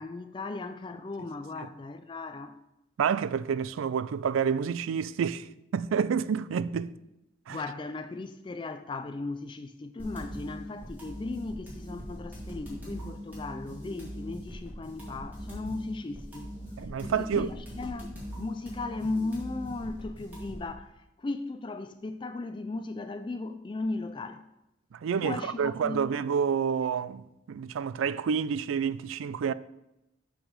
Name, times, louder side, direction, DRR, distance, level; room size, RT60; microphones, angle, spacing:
voice 1, 0.0-2.6 7.5-16.5 17.0-24.4 25.2-26.1, left 3 dB, 25° left, 0.3 m, -37 dB
voice 2, 3.0-5.5 5.7-6.9 7.5-7.6 16.8-17.5 24.9-29.5, right 7 dB, 85° right, 0.3 m, -29 dB
sound 1, 10.0-20.7, equal, 10° right, 2.3 m, -41 dB
6.1 x 5.0 x 6.6 m
head